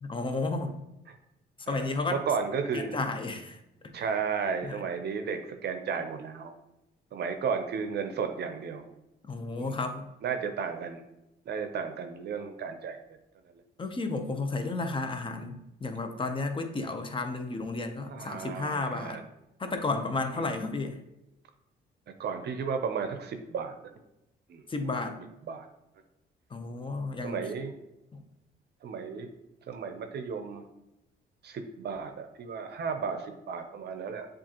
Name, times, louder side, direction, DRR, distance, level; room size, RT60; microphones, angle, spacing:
voice 1, 0.0-0.8 1.7-2.2 2.7-3.6 4.6-4.8 9.2-10.1 13.8-19.2 19.6-21.0 24.7-25.2 26.5-27.5 28.1-28.2, left 3 dB, 25° left, 7 dB, 0.6 m, -32 dB
voice 2, 1.7-3.0 3.9-6.5 7.1-8.8 9.6-9.7 10.2-11.0 11.5-13.0 14.6-14.7 18.1-19.2 20.4-20.5 22.2-23.7 24.5-24.6 25.4-25.7 27.2-27.7 28.8-29.3 29.7-30.6 31.4-34.3, right 6 dB, 55° right, 7 dB, 0.6 m, -33 dB
7.1 x 2.5 x 2.9 m, 0.89 s
cardioid pair, 90°, 20 cm